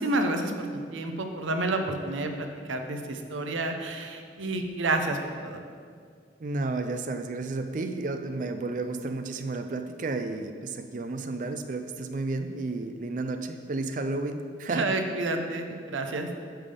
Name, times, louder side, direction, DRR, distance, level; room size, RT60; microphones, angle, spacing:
voice 1, 0.0-5.6 14.7-16.3, right 2 dB, 85° right, 5 dB, 0.7 m, -30 dB
voice 2, 6.4-14.9, right 3 dB, 40° right, 8 dB, 0.4 m, -32 dB
8.8 x 3.5 x 6.8 m, 2.1 s
head